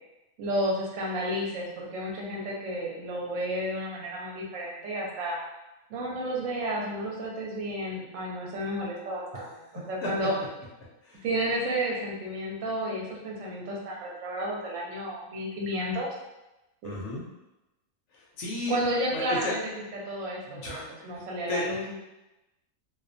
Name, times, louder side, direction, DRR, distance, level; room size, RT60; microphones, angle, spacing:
voice 1, 0.4-5.4 5.9-9.5 9.7-10.3 11.2-16.1 16.8-16.9 18.7-19.6 20.1-22.0, right 1 dB, 70° right, -2 dB, 0.9 m, -31 dB
voice 2, 9.7-10.3 10.8-11.2 16.8-17.3 18.1-18.8 19.1-19.6 20.5-21.8, left 3 dB, 65° left, -3 dB, 0.8 m, -35 dB
2.4 x 2.2 x 2.5 m, 0.98 s
omnidirectional pair, 1.5 m